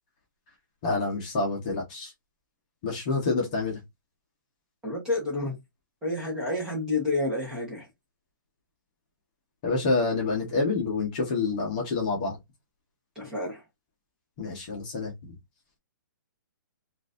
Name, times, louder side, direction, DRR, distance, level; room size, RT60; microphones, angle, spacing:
voice 1, 0.8-2.1 2.8-3.8 9.6-12.4 14.4-15.3, left 3 dB, 25° left, 1.0 m, -27 dB
voice 2, 4.8-5.5 6.0-7.8 13.2-13.6, left 2 dB, 5° right, 1.0 m, -29 dB
3.9 x 2.6 x 2.5 m
hypercardioid pair, 175°, 11 cm